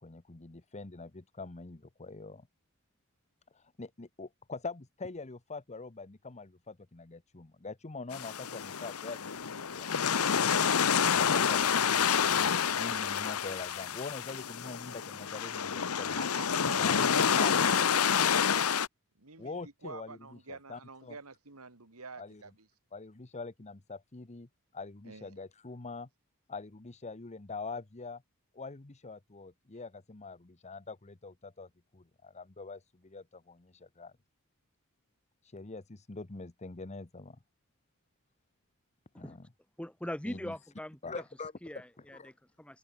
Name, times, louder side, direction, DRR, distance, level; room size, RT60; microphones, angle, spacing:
voice 1, 0.0-2.5 3.5-9.9 11.1-16.2 16.7-17.0 17.3-17.5 19.4-21.2 22.2-22.4 22.9-24.5 24.7-26.1 26.5-28.2 28.5-34.1 35.5-37.4 39.1-39.5 40.3-40.5 41.0-41.5 42.1-42.3, left 3 dB, 30° left, 1.0 m, -44 dB
sound 1, 8.1-18.9, left 7 dB, 85° left, 1.0 m, -28 dB
sound 2, 9.4-17.8, equal, 20° right, 6.3 m, -64 dB
voice 2, 16.2-18.7 19.2-22.7 25.0-25.3, right 4 dB, 90° right, 2.4 m, -47 dB
voice 3, 39.8-41.0 41.6-42.8, left 1 dB, 5° left, 1.1 m, -41 dB
open air
head